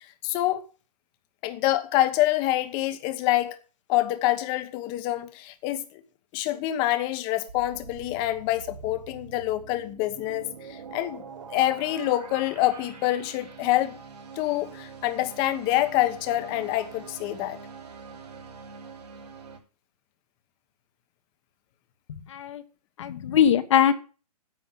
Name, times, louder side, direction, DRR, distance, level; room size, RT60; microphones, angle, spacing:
voice 1, 0.2-0.6 1.4-3.6 3.9-6.0 6.3-11.2 11.5-14.0 14.4-17.6, left 15 dB, 20° left, 1.2 m, -26 dB
sound 1, 7.5-19.6, right 5 dB, 85° right, 4.9 m, -44 dB
voice 2, 22.1-22.6 23.0-23.9, left 9 dB, 50° left, 1.5 m, -22 dB
10.0 x 8.3 x 7.8 m
hypercardioid pair, 155°, 20 cm